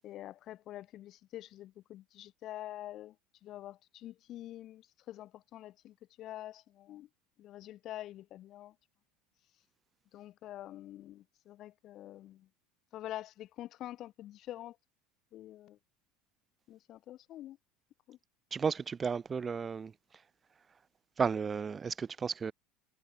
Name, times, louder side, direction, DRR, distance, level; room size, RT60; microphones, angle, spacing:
voice 1, 0.0-3.2 3.4-7.1 7.4-8.7 10.1-12.5 12.9-14.8 15.3-15.8 16.7-17.6 18.1-18.2, left 13 dB, 50° left, 6.8 m, -46 dB
voice 2, 18.5-19.9 21.2-22.5, right 6 dB, 30° right, 0.6 m, -33 dB
hypercardioid pair, 80°, 0 cm